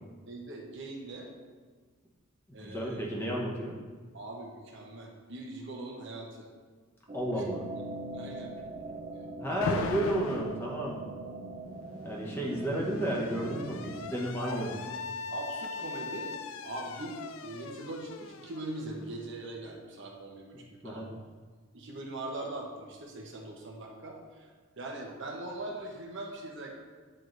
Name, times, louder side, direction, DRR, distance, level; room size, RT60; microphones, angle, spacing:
voice 1, 0.3-1.3 2.5-3.1 4.1-6.5 7.4-7.5 8.1-8.5 9.5-9.9 14.4-14.6 15.3-16.3 16.6-21.1 21.7-26.7, right 2 dB, 55° right, 0 dB, 0.9 m, -41 dB
voice 2, 2.5-3.8 7.1-7.6 9.4-11.1 12.0-14.8 20.8-21.1, right 1 dB, 10° left, -4 dB, 0.9 m, -32 dB
sound 1, 7.1-14.0, right 2 dB, 30° right, 0.5 m, -41 dB
Alarm, 9.6-10.6 11.8-19.5, left 4 dB, 65° left, 0.3 m, -40 dB
8.8 x 4.6 x 2.6 m, 1.5 s
head